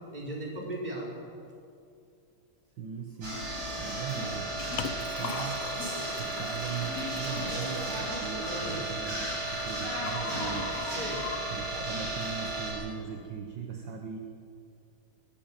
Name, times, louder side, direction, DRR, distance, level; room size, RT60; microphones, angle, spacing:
voice 1, 0.1-1.1 8.4-8.8 10.9-11.2, right 1 dB, 20° right, -3 dB, 5.1 m, -37 dB
voice 2, 2.8-3.5 3.8-5.8 6.2-9.2 9.5-10.8 11.5-14.2, right 7 dB, 60° right, 4 dB, 1.9 m, -39 dB
sound 1, 3.2-12.7, right 1 dB, 90° right, 8.6 m, -34 dB
Liquid, 4.2-9.2, left 9 dB, 75° left, 1.7 m, -42 dB
sound 2, 8.0-11.8, left 5 dB, 55° left, 2.1 m, -41 dB
22.5 x 14.0 x 9.1 m, 2.4 s
omnidirectional pair, 2.3 m